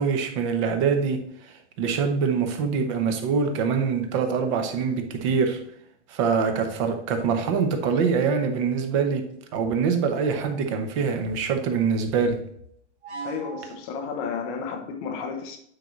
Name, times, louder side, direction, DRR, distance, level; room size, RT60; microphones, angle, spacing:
voice 1, 0.0-5.6 6.1-9.3 9.5-12.4, right 5 dB, 25° right, 6 dB, 0.9 m, -24 dB
sound 1, 9.3-9.9 10.2-10.4 10.8-13.9 14.5-14.8, right 5 dB, 70° right, 2.8 m, -42 dB
voice 2, 13.2-15.6, left 6 dB, 15° left, 5 dB, 0.5 m, -32 dB
9.0 x 4.6 x 4.0 m, 0.69 s
hypercardioid pair, 165°, 35 cm